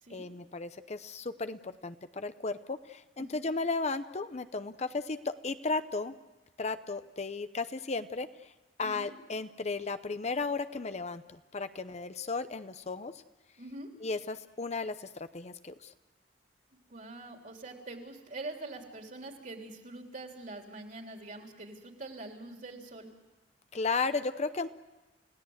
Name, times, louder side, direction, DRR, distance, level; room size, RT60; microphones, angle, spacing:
voice 1, 0.1-6.1 6.6-8.3 8.8-13.1 14.0-15.9 23.7-24.7, left 3 dB, 40° left, 11 dB, 0.8 m, -35 dB
voice 2, 3.2-3.5 8.8-9.1 13.6-13.9 16.9-23.1, right 2 dB, 50° right, 2 dB, 3.5 m, -44 dB
29.5 x 17.0 x 8.0 m, 1.1 s
head